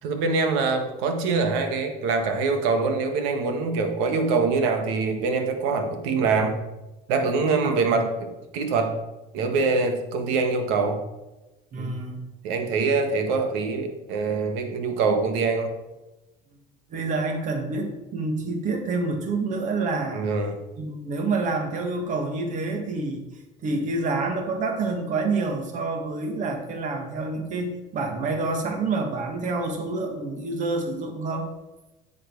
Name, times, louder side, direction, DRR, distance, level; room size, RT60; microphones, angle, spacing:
voice 1, 0.0-6.6 7.1-9.0 9.3-11.0 11.8-11.9 12.4-15.7 20.1-20.6, right 4 dB, 80° right, 6 dB, 1.7 m, -24 dB
voice 2, 11.7-12.2 16.9-20.3 20.8-23.3 23.6-31.5, right 3 dB, 40° right, 4 dB, 1.9 m, -28 dB
9.9 x 7.9 x 4.7 m, 1.1 s
cardioid pair, 145°, 19 cm